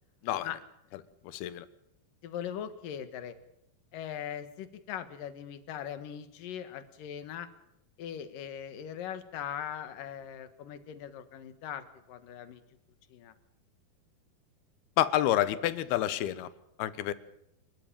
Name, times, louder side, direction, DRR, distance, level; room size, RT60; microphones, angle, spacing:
voice 1, 1.2-1.7 15.0-16.5 16.8-17.1, left 13 dB, 85° left, 15 dB, 3.0 m, -28 dB
voice 2, 2.2-3.4 3.9-7.5 8.0-12.6 13.1-13.3, left 9 dB, 65° left, 11 dB, 3.0 m, -40 dB
27.5 x 13.0 x 9.0 m, 0.80 s
omnidirectional pair, 4.4 m